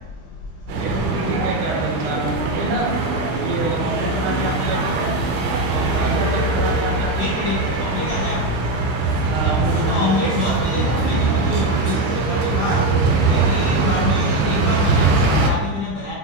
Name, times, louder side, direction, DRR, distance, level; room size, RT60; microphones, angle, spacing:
sound 1, 0.7-15.5, right 3 dB, 75° right, 1.1 m, -21 dB
voice 1, 0.8-2.9 3.3-5.2 5.7-7.2 9.3-10.3 14.4-14.6, right 2 dB, 90° right, 0 dB, 1.7 m, -27 dB
voice 2, 7.2-8.6 9.7-12.9 13.2-16.1, left 3 dB, 65° left, -5 dB, 0.9 m, -26 dB
5.0 x 2.5 x 2.7 m, 1.1 s
omnidirectional pair, 2.3 m